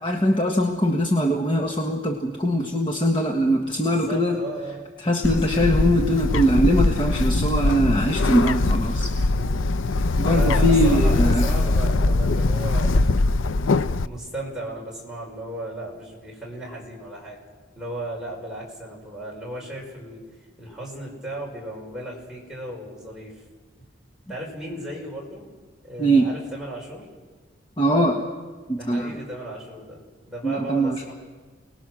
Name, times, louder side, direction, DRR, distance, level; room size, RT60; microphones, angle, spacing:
voice 1, 0.0-4.4 5.0-9.1 10.0-11.5 26.0-26.3 27.8-28.2 28.7-29.1 30.4-31.1, equal, 25° left, 1 dB, 1.4 m, -22 dB
voice 2, 3.8-4.8 9.3-9.6 10.3-13.4 14.0-17.4 17.7-20.2 20.6-23.4 24.3-25.5 25.8-27.1 28.7-30.0 30.3-31.1, right 1 dB, 5° right, -3 dB, 5.5 m, -35 dB
Bird, 5.2-14.1, left 2 dB, 90° left, 0.6 m, -22 dB
29.5 x 20.0 x 6.3 m, 1.4 s
head